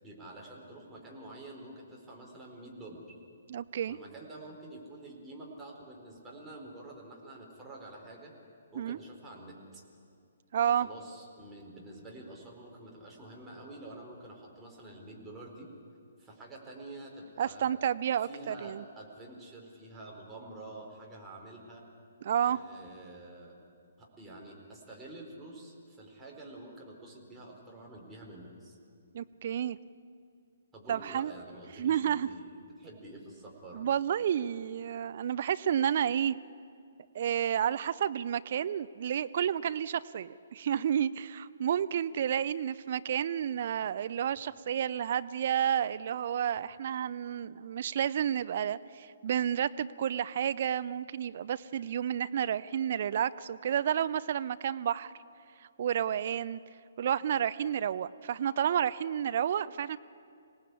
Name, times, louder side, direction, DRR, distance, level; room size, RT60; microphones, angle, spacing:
voice 1, 0.0-3.0 3.9-8.3 8.7-9.8 10.7-15.7 16.2-17.7 18.2-21.8 22.4-23.5 24.0-28.8 30.7-33.9, right 2 dB, 10° right, -2 dB, 4.5 m, -48 dB
voice 2, 3.5-4.0 8.8-9.0 10.5-10.9 17.4-18.8 22.2-22.6 29.1-29.8 30.9-31.3 31.8-32.3 33.7-36.4 37.1-55.1 55.8-56.6 57.0-60.0, right 9 dB, 45° right, 15 dB, 0.6 m, -30 dB
26.0 x 18.0 x 8.4 m, 2.3 s
figure-of-eight pair, 130°, 0 cm